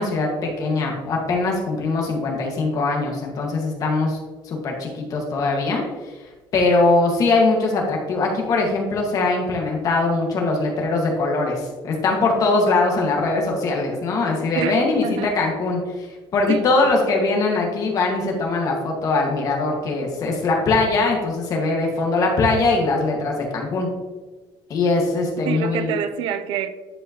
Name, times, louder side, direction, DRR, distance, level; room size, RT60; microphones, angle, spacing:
voice 1, 0.0-4.2 4.4-6.1 6.5-23.9 24.7-25.9, left 3 dB, 40° left, 1.8 m, -21 dB
voice 2, 14.5-15.3 16.5-16.7 25.5-26.7, right 9 dB, 75° right, 0.6 m, -27 dB
11.0 x 4.9 x 3.0 m
cardioid pair, 160°, 9 cm